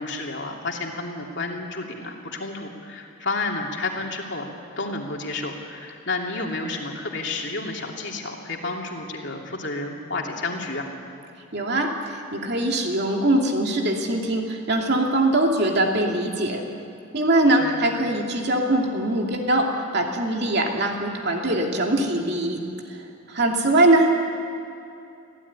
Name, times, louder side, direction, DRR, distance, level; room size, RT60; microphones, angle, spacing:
voice 1, 0.0-4.5 4.8-10.9 17.5-17.8, left 3 dB, 55° left, 0 dB, 2.9 m, -31 dB
voice 2, 11.5-16.6 17.1-22.6 23.3-24.1, right 1 dB, 50° right, 1 dB, 2.8 m, -22 dB
25.5 x 16.0 x 9.7 m, 2.6 s
head